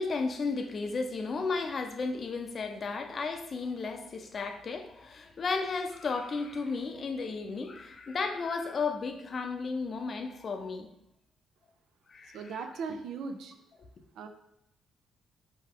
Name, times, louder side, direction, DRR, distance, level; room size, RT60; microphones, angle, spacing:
voice 1, 0.0-10.9 12.1-12.6, left 4 dB, 45° left, 6 dB, 0.5 m, -34 dB
voice 2, 12.3-13.5 14.2-14.3, right 5 dB, 75° right, 7 dB, 0.5 m, -38 dB
4.6 x 3.0 x 3.7 m, 0.80 s
cardioid pair, 90°, 0 cm